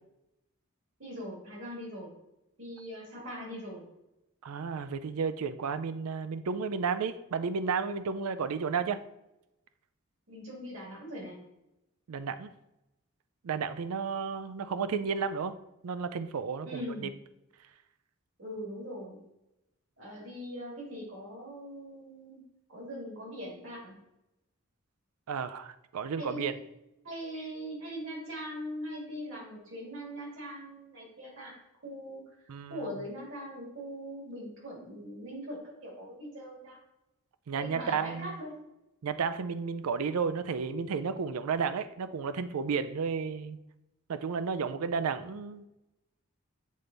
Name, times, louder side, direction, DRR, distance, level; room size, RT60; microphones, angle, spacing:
voice 1, 1.0-2.1 2.6-3.8 10.3-11.3 16.6-17.1 18.4-19.2 20.0-22.4 22.7-23.9 26.2-26.5 27.0-31.5 31.8-32.2 32.7-36.8 37.6-38.6, equal, 60° right, -2 dB, 2.2 m, -41 dB
voice 2, 4.4-9.0 12.1-12.5 13.4-15.5 15.8-17.1 25.3-26.5 32.5-32.9 37.5-38.4 39.0-43.6 44.1-45.7, right 5 dB, 90° right, 12 dB, 0.4 m, -32 dB
7.4 x 3.3 x 3.9 m, 0.89 s
head